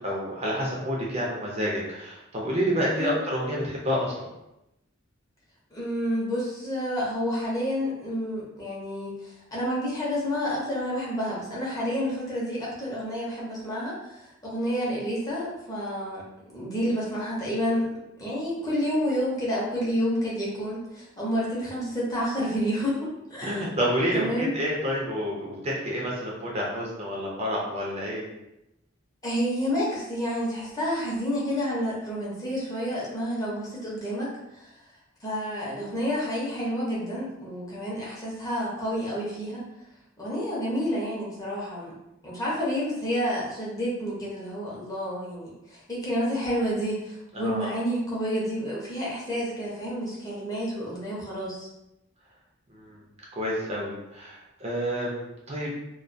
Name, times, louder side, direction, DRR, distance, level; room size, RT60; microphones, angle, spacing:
voice 1, 0.0-4.3 23.4-28.2 47.3-47.7 52.7-53.0 53.3-55.8, equal, 35° right, -4 dB, 0.5 m, -29 dB
voice 2, 5.7-16.2 16.5-17.9 18.2-23.7 24.1-24.5 29.2-34.7 35.2-39.6 40.2-41.9 42.2-51.7, equal, 20° left, -6 dB, 0.7 m, -29 dB
2.3 x 2.3 x 2.5 m, 0.89 s
head